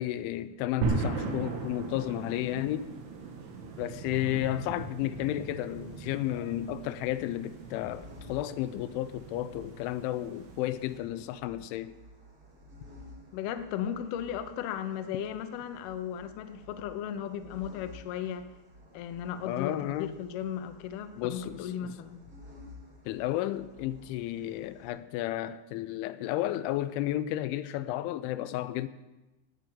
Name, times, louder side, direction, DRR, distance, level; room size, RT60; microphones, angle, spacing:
voice 1, 0.0-2.9 3.8-12.0 19.5-20.1 21.2-21.9 23.1-28.9, left 13 dB, 90° left, 3.1 m, -32 dB
sound 1, 0.8-11.0, right 4 dB, 85° right, 4.3 m, -38 dB
sound 2, 5.7-24.9, left 2 dB, 30° right, 2.1 m, -54 dB
voice 2, 13.3-18.5 18.9-22.2, left 9 dB, 75° left, 2.5 m, -36 dB
17.0 x 6.4 x 8.7 m
omnidirectional pair, 5.3 m